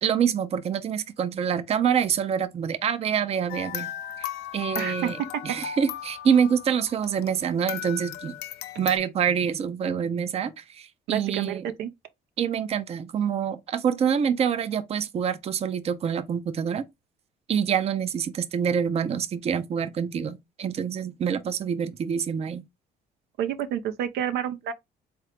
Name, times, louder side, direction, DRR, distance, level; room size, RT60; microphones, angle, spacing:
voice 1, 0.0-3.9 4.2-4.3 4.5-5.2 5.4-8.3 8.8-11.7 12.4-16.8 17.5-22.6, right 7 dB, 35° right, 0.5 m, -26 dB
sound 1, 3.5-7.4 7.7-9.0, left 11 dB, 80° left, 0.5 m, -36 dB
voice 2, 4.8-5.4 11.1-11.9 23.4-24.7, right 9 dB, 80° right, 0.6 m, -29 dB
3.8 x 3.0 x 3.3 m
cardioid pair, 110°, 17 cm